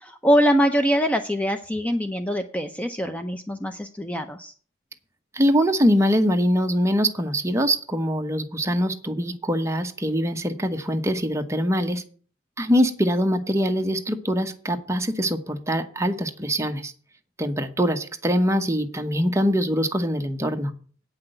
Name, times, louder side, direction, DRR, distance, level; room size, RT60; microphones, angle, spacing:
voice 1, 0.0-4.5, equal, 5° left, 7 dB, 0.6 m, -23 dB
voice 2, 5.3-12.0 12.6-16.9 17.4-20.7, equal, 15° right, 5 dB, 1.0 m, -23 dB
9.0 x 5.9 x 7.8 m, 0.42 s
head